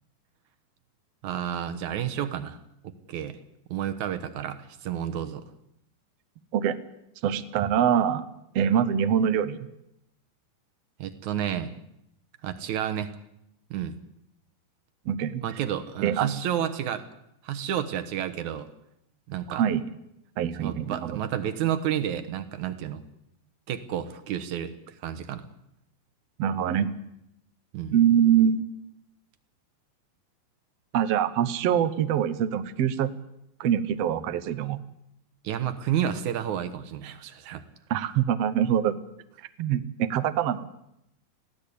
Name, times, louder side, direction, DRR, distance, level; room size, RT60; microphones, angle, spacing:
voice 1, 1.2-2.6 2.8-3.4 3.7-5.4 11.0-11.7 12.4-13.1 13.7-13.9 15.4-17.1 17.4-18.7 19.3-19.6 20.6-23.0 23.7-24.7 25.0-25.5 27.7-28.0 35.4-37.6, right 10 dB, 65° right, 9 dB, 2.2 m, -30 dB
voice 2, 7.2-8.3 8.5-9.7 15.1-15.4 16.0-16.3 19.5-19.8 20.4-21.2 26.4-26.9 27.9-28.6 30.9-33.1 33.6-34.8 37.9-39.0 39.6-40.7, right 9 dB, 90° right, 11 dB, 1.4 m, -24 dB
21.5 x 15.5 x 8.4 m, 0.81 s
omnidirectional pair, 4.3 m